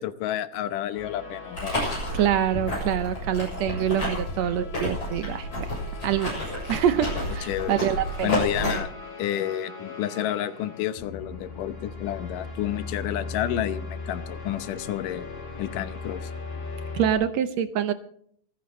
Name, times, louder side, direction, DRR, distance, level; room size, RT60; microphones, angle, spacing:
voice 1, 0.0-1.8 7.4-7.8 8.2-8.9 9.2-15.3 15.6-16.3, left 12 dB, 80° left, 12 dB, 2.4 m, -30 dB
sound 1, 0.9-17.1, left 4 dB, 60° left, 6.3 m, -39 dB
sound 2, 1.5-8.8, left 1 dB, 35° left, 8.2 m, -30 dB
voice 2, 2.1-5.7 6.0-6.3 6.7-8.4 16.9-17.9, right 10 dB, 75° right, 11 dB, 1.6 m, -25 dB
27.0 x 10.5 x 3.1 m, 0.63 s
omnidirectional pair, 3.8 m